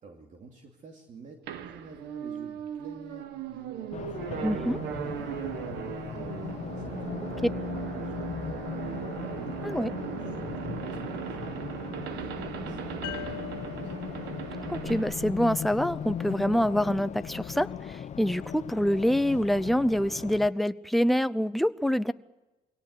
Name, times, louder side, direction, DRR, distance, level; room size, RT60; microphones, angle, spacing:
voice 1, 0.0-7.3 7.8-14.0, right 4 dB, 45° right, 2 dB, 2.7 m, -50 dB
sound 1, 1.5-16.2, right 9 dB, 85° right, 1.8 m, -38 dB
Race car auto racing, 3.9-20.5, left 8 dB, 45° left, 0.8 m, -38 dB
voice 2, 4.4-4.8 9.6-9.9 14.7-22.1, equal, ahead, 13 dB, 0.7 m, -26 dB
sound 2, 13.0-16.5, left 16 dB, 85° left, 0.7 m, -44 dB
22.5 x 18.0 x 8.2 m, 1.1 s
cardioid pair, 110°, 17 cm